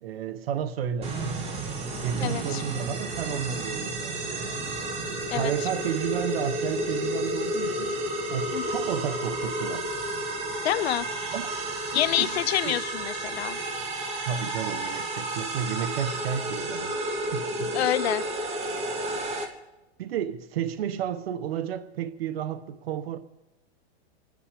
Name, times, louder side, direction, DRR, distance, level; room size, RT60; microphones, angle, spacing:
voice 1, 0.0-1.2 2.0-4.5 5.1-8.0 8.3-9.9 11.3-11.5 12.2-12.4 12.6-12.8 14.3-17.0 17.3-17.8 20.0-23.2, right 8 dB, 65° right, 1.1 m, -32 dB
sound 1, 1.0-19.4, right 1 dB, 20° right, 1.9 m, -31 dB
voice 2, 2.2-2.6 5.3-5.5 8.5-8.8 10.6-11.1 11.9-13.6 17.7-18.2, left 13 dB, 70° left, 0.7 m, -27 dB
28.5 x 9.8 x 5.1 m
supercardioid pair, 165°, 32 cm